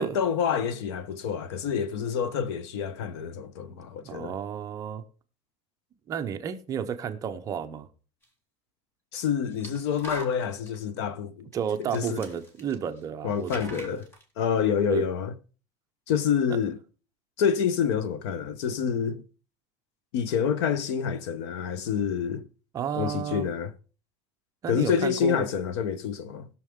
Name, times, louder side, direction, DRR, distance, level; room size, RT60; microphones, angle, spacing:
voice 1, 0.0-4.3 9.1-11.5 11.9-12.3 13.2-14.0 14.4-15.4 16.1-16.8 17.4-19.2 20.1-22.5 22.9-23.7 24.7-26.5, left 7 dB, 75° left, 1.1 m, -27 dB
voice 2, 3.7-5.0 6.1-7.9 11.5-13.8 14.9-15.0 16.5-16.6 22.7-23.5 24.6-25.5, right 8 dB, 25° right, 0.7 m, -32 dB
sound 1, 8.2-8.3 9.5-10.8 11.5-11.6 11.8-13.1 13.3-14.2, right 1 dB, 15° left, 1.6 m, -43 dB
19.0 x 6.5 x 3.6 m
cardioid pair, 175°, 15 cm